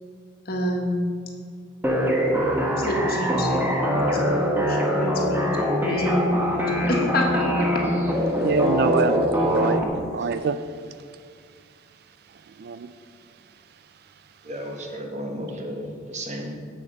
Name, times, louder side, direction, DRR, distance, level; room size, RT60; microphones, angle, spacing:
voice 1, 0.5-1.1 2.8-3.6 4.0-5.6 5.8-6.6 6.9-7.7, left 1 dB, 50° left, 1 dB, 1.4 m, -27 dB
sound 1, 1.8-9.8, equal, 10° right, 1.0 m, -23 dB
voice 2, 8.3-9.8 10.1-11.2 12.3-12.9 13.5-13.6 14.0-14.1, right 5 dB, 50° right, 11 dB, 0.3 m, -27 dB
voice 3, 9.7-10.0 14.4-16.5, equal, 35° right, 2 dB, 1.2 m, -34 dB
7.8 x 7.2 x 5.4 m, 2.2 s
head